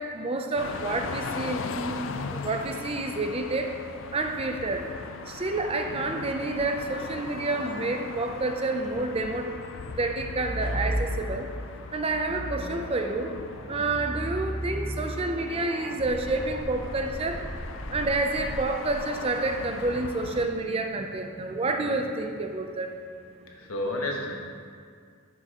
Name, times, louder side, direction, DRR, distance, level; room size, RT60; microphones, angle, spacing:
voice 1, 0.0-2.0 2.3-3.7 4.1-4.9 5.3-9.5 10.0-11.5 11.9-13.4 13.7-17.4 17.9-22.9, right 2 dB, 25° right, 4 dB, 0.4 m, -29 dB
sound 1, 0.6-20.5, left 5 dB, 60° left, 0.4 m, -39 dB
sound 2, 10.1-11.5 12.0-19.0, equal, 10° left, 1.0 m, -35 dB
voice 2, 23.4-24.4, left 1 dB, 80° left, 0 dB, 1.2 m, -31 dB
10.0 x 7.1 x 2.9 m, 2.1 s
head